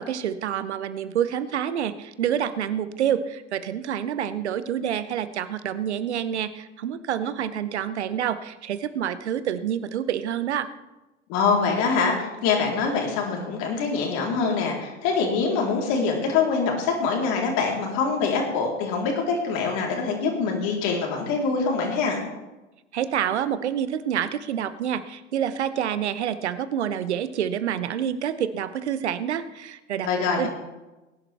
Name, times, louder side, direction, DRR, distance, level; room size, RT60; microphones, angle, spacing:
voice 1, 0.0-10.7 22.9-30.5, right 9 dB, 70° right, 14 dB, 0.9 m, -27 dB
voice 2, 11.3-22.2 30.0-30.5, left 5 dB, 50° left, 0 dB, 3.7 m, -24 dB
20.0 x 11.0 x 3.4 m, 1.1 s
figure-of-eight pair, 80°, 35 cm